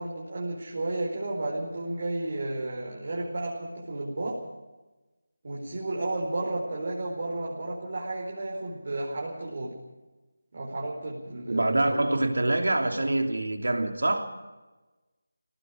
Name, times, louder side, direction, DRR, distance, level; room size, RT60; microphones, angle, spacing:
voice 1, 0.0-4.4 5.4-9.7 10.5-12.0, right 2 dB, 45° right, -3 dB, 4.9 m, -32 dB
voice 2, 11.5-14.3, right 2 dB, 70° right, 4 dB, 3.1 m, -25 dB
27.5 x 18.5 x 5.1 m, 1.2 s
figure-of-eight pair, 160°, 0 cm